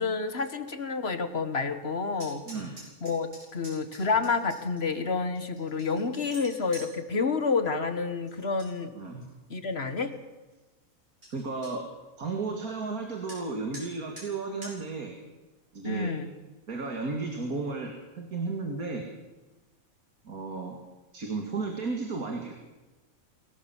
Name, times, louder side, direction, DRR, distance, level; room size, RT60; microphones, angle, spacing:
voice 1, 0.0-2.4 3.0-8.9 9.5-10.1 15.8-16.3, left 4 dB, 45° left, 10 dB, 1.7 m, -29 dB
sound 1, 2.1-4.8 5.4-6.9 8.3-8.7 9.1-9.6 10.1-10.2 10.5-10.6 10.9-11.0 11.2-11.7 13.3-13.4 13.7-13.9 14.2-14.3 14.6-14.7, right 1 dB, 60° right, 8.5 m, -46 dB
voice 2, 8.9-9.3 11.3-11.8 12.2-15.2 15.7-16.1 16.7-19.1 20.2-20.8 21.1-22.6, right 3 dB, 85° right, 2 dB, 2.7 m, -33 dB
22.5 x 17.5 x 7.2 m, 1.1 s
omnidirectional pair, 1.5 m